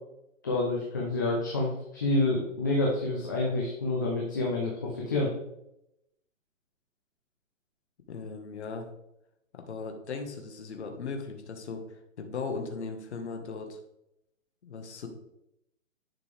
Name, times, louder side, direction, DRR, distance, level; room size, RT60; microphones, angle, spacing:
voice 1, 0.4-5.3, left 2 dB, 15° left, -4 dB, 0.7 m, -28 dB
voice 2, 8.1-8.9 9.5-13.8 14.6-15.1, left 4 dB, 60° left, 4 dB, 1.7 m, -38 dB
11.0 x 5.3 x 3.4 m, 0.82 s
hypercardioid pair, 175°, 38 cm